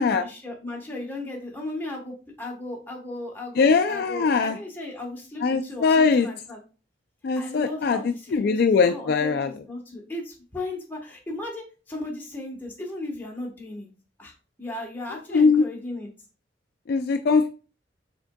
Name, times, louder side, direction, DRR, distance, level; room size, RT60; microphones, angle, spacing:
voice 1, 0.0-6.6 7.4-13.9 14.2-16.1, left 2 dB, 10° left, -1 dB, 1.1 m, -36 dB
voice 2, 3.6-4.6 5.4-6.3 7.2-9.5 15.3-15.7 16.9-17.5, left 5 dB, 55° left, 6 dB, 0.3 m, -21 dB
6.1 x 3.6 x 2.2 m, 0.35 s
head